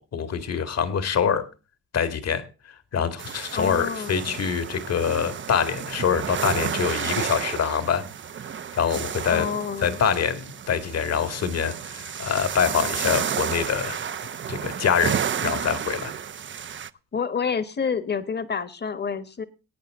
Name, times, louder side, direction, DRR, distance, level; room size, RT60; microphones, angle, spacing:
voice 1, 0.0-1.4 1.9-2.4 2.9-8.0 8.7-9.5 9.8-14.0 14.5-16.1, left 7 dB, 55° left, 11 dB, 2.2 m, -25 dB
sound 1, 3.2-16.9, right 8 dB, 40° right, 0.7 m, -31 dB
voice 2, 3.5-4.4 9.3-10.0 17.1-19.4, left 6 dB, 35° left, 14 dB, 1.5 m, -28 dB
18.0 x 9.1 x 3.7 m, 0.32 s
cardioid pair, 90°, 30 cm